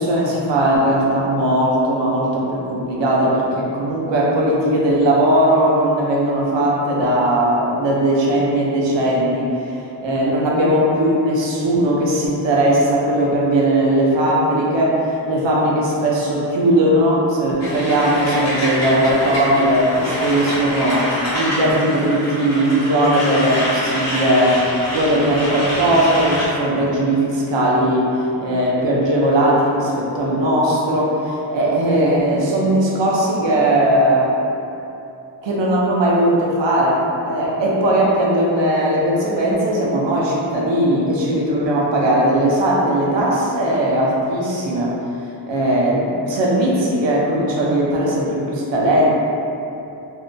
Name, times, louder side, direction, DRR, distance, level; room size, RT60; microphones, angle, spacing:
voice 1, 0.0-9.5 10.0-24.6 24.9-34.3 35.4-44.9 45.5-49.1, right 1 dB, 80° right, -4 dB, 0.6 m, -18 dB
Truck, 17.6-26.5, equal, 40° left, 0.6 m, -26 dB
2.6 x 2.2 x 2.5 m, 2.8 s
wide cardioid pair, 110°, 44 cm